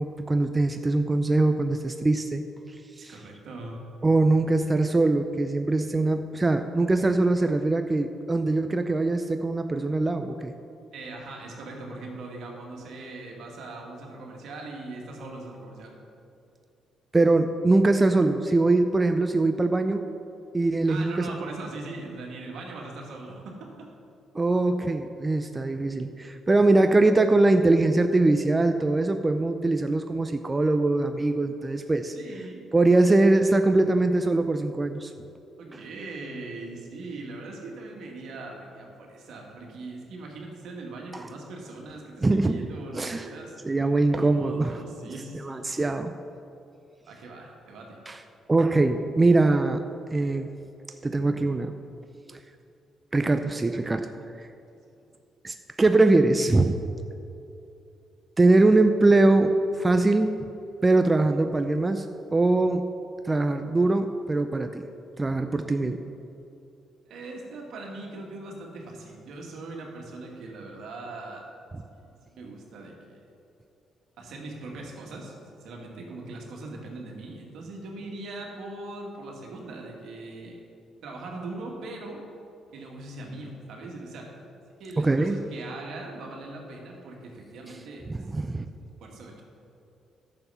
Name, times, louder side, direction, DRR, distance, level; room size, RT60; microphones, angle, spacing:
voice 1, 0.0-2.4 3.0-3.2 4.0-10.5 17.1-20.0 20.5-21.3 24.3-32.1 32.7-35.1 35.7-35.8 41.1-41.3 42.2-42.6 42.9-43.3 43.6-44.8 45.1-46.1 48.1-48.2 48.5-49.8 50.1-50.5 51.0-51.7 52.3-52.4 53.1-54.1 54.4-54.5 55.4-56.8 58.4-60.4 60.8-62.1 62.3-62.8 63.2-64.8 65.2-66.0 71.7-71.8 85.0-85.4 88.1-88.7, right 2 dB, 20° right, 7 dB, 0.4 m, -22 dB
voice 2, 3.1-3.8 10.9-15.9 20.9-23.9 32.1-32.7 35.6-43.5 43.8-45.8 47.1-48.0 67.1-71.4 71.8-73.2 74.2-80.6 81.0-82.2 82.7-84.3 84.8-88.3 89.0-89.4, right 2 dB, 75° right, 0 dB, 2.0 m, -40 dB
10.5 x 7.0 x 5.6 m, 2.7 s
cardioid pair, 90°, 0 cm